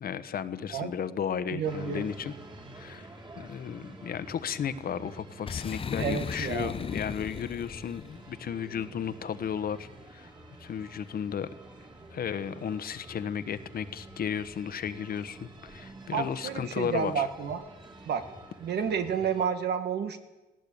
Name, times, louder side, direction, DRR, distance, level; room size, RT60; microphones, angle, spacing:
voice 1, 0.0-2.3 2.7-10.3 10.6-11.5 12.1-17.2, left 8 dB, 55° left, 13 dB, 1.2 m, -34 dB
voice 2, 1.5-2.0 6.0-6.8 16.1-17.6 18.1-18.2 18.6-20.2, right 7 dB, 65° right, 8 dB, 2.0 m, -30 dB
sound 1, 1.6-19.4, right 2 dB, 25° right, 3.7 m, -49 dB
Boom, 5.5-8.2, left 6 dB, 30° left, 0.7 m, -36 dB
19.0 x 17.0 x 8.7 m, 1.1 s
cardioid pair, 105°, 18 cm